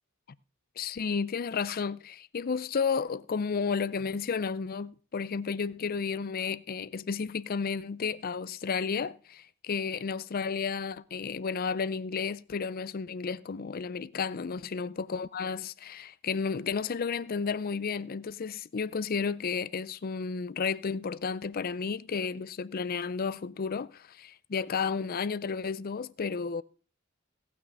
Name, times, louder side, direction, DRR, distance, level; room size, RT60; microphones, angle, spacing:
voice 1, 0.8-26.6, left 5 dB, 45° left, 0.5 m, -32 dB
17.5 x 6.0 x 5.4 m
head